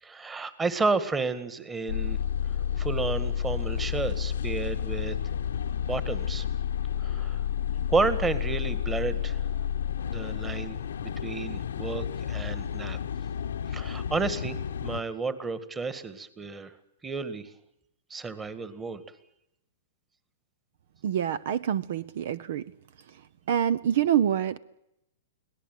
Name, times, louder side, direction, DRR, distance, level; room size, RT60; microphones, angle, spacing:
voice 1, 0.0-2.2 2.8-5.2 5.8-6.5 7.0-7.4 7.9-9.4 10.1-13.0 13.7-16.7 17.0-17.5 18.1-19.0, right 4 dB, 15° right, 12 dB, 1.9 m, -31 dB
sound 1, 1.9-15.0, left 9 dB, 85° left, 1.0 m, -31 dB
voice 2, 21.0-22.6 23.5-24.6, right 9 dB, 60° right, 18 dB, 0.9 m, -26 dB
24.0 x 17.5 x 9.1 m, 0.81 s
hypercardioid pair, 145°, 0 cm